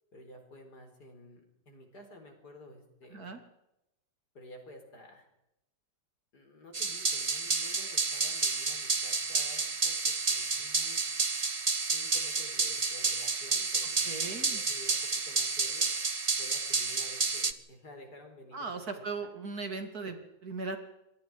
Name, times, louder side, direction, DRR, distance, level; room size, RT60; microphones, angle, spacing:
voice 1, 0.1-3.3 4.3-5.3 6.3-11.1 11.9-15.0 15.3-15.9 16.4-19.3, left 1 dB, 70° left, 4 dB, 4.8 m, -52 dB
sound 1, 6.7-17.5, right 4 dB, 30° right, 0.6 m, -30 dB
voice 2, 14.0-14.6 18.5-20.8, right 4 dB, 60° right, 6 dB, 3.1 m, -38 dB
26.5 x 22.5 x 4.9 m, 0.88 s
omnidirectional pair, 1.8 m